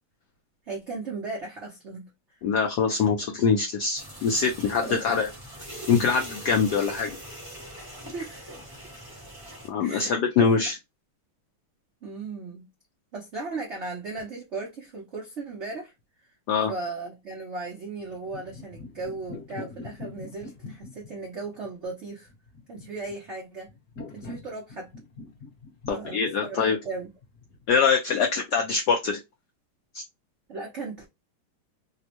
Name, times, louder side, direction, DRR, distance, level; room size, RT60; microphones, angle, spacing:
voice 1, 0.7-2.1 2.9-3.0 4.8-5.3 8.1-8.6 9.8-10.5 12.0-12.6 13.1-15.9 16.7-22.3 22.7-23.7 24.1-24.9 25.9-27.1 30.5-31.1, right 3 dB, 80° right, 0.6 m, -36 dB
voice 2, 2.4-5.3 5.9-7.2 9.7-10.8 16.5-16.7 25.9-26.8 27.7-29.2 29.9-30.0, left 5 dB, 80° left, 0.9 m, -23 dB
sound 1, 4.0-9.7, right 1 dB, 20° right, 0.6 m, -42 dB
sound 2, 18.0-27.7, left 3 dB, 45° left, 1.1 m, -44 dB
3.5 x 2.1 x 2.8 m
omnidirectional pair, 2.3 m